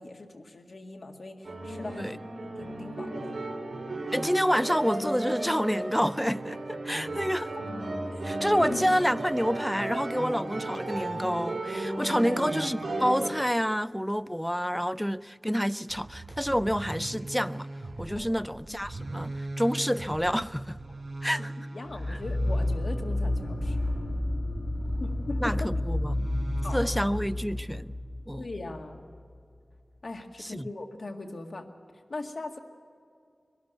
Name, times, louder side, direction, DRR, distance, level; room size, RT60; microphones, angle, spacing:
voice 1, 0.0-3.4 7.4-7.6 8.1-8.8 11.9-12.5 18.1-18.9 21.0-21.5 21.7-23.8 25.0-25.7 26.6-26.8 28.4-29.0 30.0-31.7 31.9-32.6, left 2 dB, 65° left, 2.0 m, -40 dB
sound 1, 1.4-13.3, right 2 dB, 85° right, 3.0 m, -34 dB
voice 2, 4.1-7.4 8.2-17.7 18.0-20.8 21.2-21.5 22.1-22.2 25.4-26.3 26.7-27.9 28.3-28.5 30.4-30.7, equal, ahead, 0.4 m, -28 dB
sound 2, 15.9-25.4 26.1-27.2, right 2 dB, 70° right, 3.8 m, -41 dB
sound 3, 21.9-29.2, left 1 dB, 35° left, 1.5 m, -30 dB
22.5 x 13.0 x 9.2 m
wide cardioid pair, 65°, 0 cm